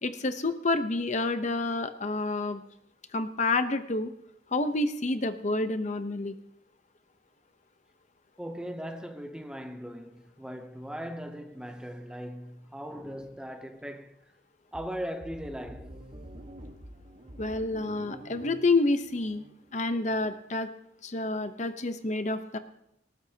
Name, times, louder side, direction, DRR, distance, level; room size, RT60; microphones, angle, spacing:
voice 1, 0.0-2.6 3.1-4.1 4.5-6.4 17.4-19.4 19.7-20.7 21.0-22.6, left 2 dB, 40° left, 0.8 m, -28 dB
voice 2, 8.4-14.2 14.7-16.0, equal, 5° right, 0.7 m, -39 dB
sound 1, 14.7-20.4, right 1 dB, 35° right, 1.4 m, -47 dB
19.0 x 18.0 x 2.9 m
head